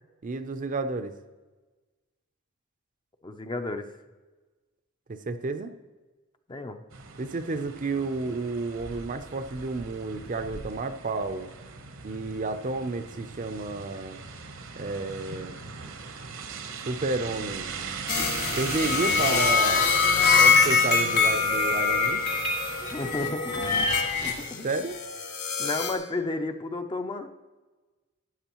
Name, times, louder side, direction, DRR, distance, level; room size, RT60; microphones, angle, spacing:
voice 1, 0.2-1.1 5.1-5.7 7.2-11.5 12.0-14.2 14.8-15.5 16.8-17.7 18.6-19.9 20.2-22.2 24.6-25.0, right 3 dB, 40° right, 9 dB, 0.5 m, -31 dB
voice 2, 3.2-3.9 6.5-6.8 22.9-23.8 24.2-24.7 25.6-27.3, left 2 dB, 20° left, 7 dB, 0.5 m, -32 dB
sound 1, 6.9-23.2, right 5 dB, 65° right, 1.0 m, -39 dB
sound 2, 18.1-25.9, left 5 dB, 55° left, 1.8 m, -24 dB
12.5 x 9.1 x 3.0 m, 1.3 s
head